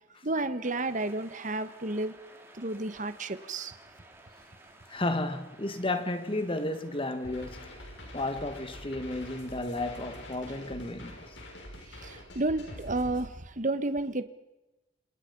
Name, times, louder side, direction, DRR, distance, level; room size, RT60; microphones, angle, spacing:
voice 1, 0.2-2.1 2.5-3.7 11.9-14.2, right 2 dB, 45° right, 1.5 m, -31 dB
sound 1, 0.6-10.4, right 2 dB, 15° right, 3.7 m, -55 dB
voice 2, 4.9-7.8 8.1-11.2, left 2 dB, 30° left, 2.1 m, -33 dB
sound 2, 7.2-13.3, left 1 dB, 75° left, 6.2 m, -45 dB
27.5 x 27.0 x 5.5 m
head